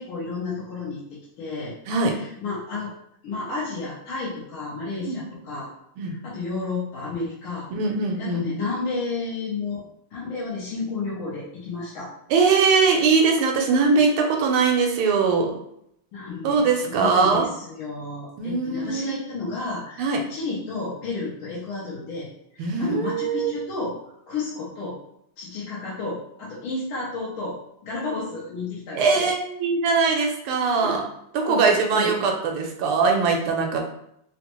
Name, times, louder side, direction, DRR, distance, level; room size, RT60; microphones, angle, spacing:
voice 1, 0.0-1.7 2.1-2.9 3.2-5.7 6.2-7.7 8.2-9.8 10.1-12.1 16.1-22.3 22.5-24.0 24.3-24.9 25.4-29.3 30.8-31.0 31.5-32.2, left 3 dB, 80° left, -7 dB, 1.6 m, -31 dB
voice 2, 7.7-8.5 12.3-15.5 16.4-17.4 18.4-19.2 20.0-20.2 22.6-23.6 28.9-31.0 31.3-33.8, right 4 dB, 85° right, 2 dB, 1.5 m, -21 dB
4.0 x 2.1 x 2.9 m, 0.75 s
omnidirectional pair, 2.3 m